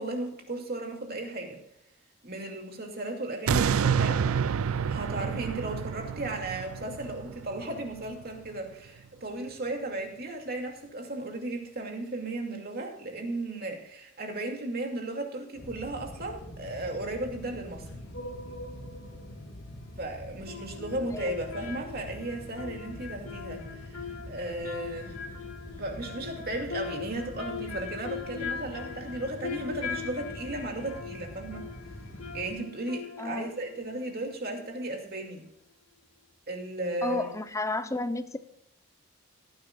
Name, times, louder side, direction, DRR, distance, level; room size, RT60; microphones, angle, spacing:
voice 1, 0.0-1.6 2.2-4.4 4.9-18.0 20.0-25.2 25.8-31.7 32.3-35.5 36.5-37.4, right 2 dB, 45° right, 2 dB, 2.5 m, -35 dB
sound 1, 3.5-8.6 9.0-9.1, right 7 dB, 85° right, 0.4 m, -29 dB
sound 2, 15.6-32.5, left 1 dB, 70° left, 2.6 m, -44 dB
sound 3, 18.1-19.3 20.5-35.0 35.2-35.3, left 6 dB, 90° left, 2.0 m, -41 dB
voice 2, 33.2-33.5 37.0-38.4, left 2 dB, 15° left, 11 dB, 0.7 m, -32 dB
17.5 x 10.5 x 2.4 m, 0.77 s
head